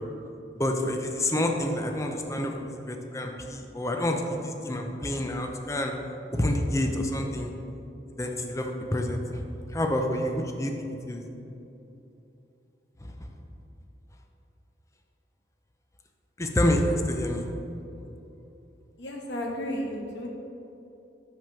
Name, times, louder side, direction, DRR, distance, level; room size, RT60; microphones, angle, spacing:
voice 1, 0.6-5.9 6.3-7.5 8.2-9.2 9.7-10.7 11.1-11.2 16.4-17.5, left 1 dB, 15° left, 3 dB, 0.6 m, -28 dB
voice 2, 19.0-20.3, equal, 90° left, 0 dB, 1.3 m, -33 dB
6.0 x 5.3 x 5.7 m, 2.9 s
head